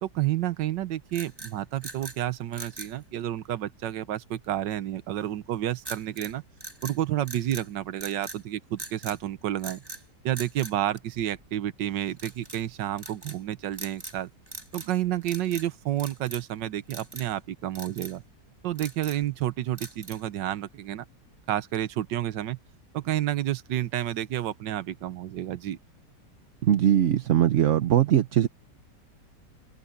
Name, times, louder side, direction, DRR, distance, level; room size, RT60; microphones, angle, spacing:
voice 1, 0.0-6.4 6.8-9.8 10.2-14.3 14.7-18.2 18.6-21.0 21.5-22.6 22.9-25.8, right 12 dB, 90° right, 1.5 m, -30 dB
sound 1, 1.1-2.2 2.5-3.0 5.8-6.3 6.6-7.7 8.0-8.4 8.8-9.2 9.6-10.0 10.3-11.5 12.2-12.6 13.0-13.4 13.7-14.2 14.5-15.0 15.2-15.7 16.0-16.5 16.9-17.3 17.7-18.2 18.6-19.3 19.8-20.3, right 2 dB, 15° right, 1.6 m, -42 dB
voice 2, 26.6-28.5, right 10 dB, 55° right, 0.9 m, -21 dB
omnidirectional pair, 1.9 m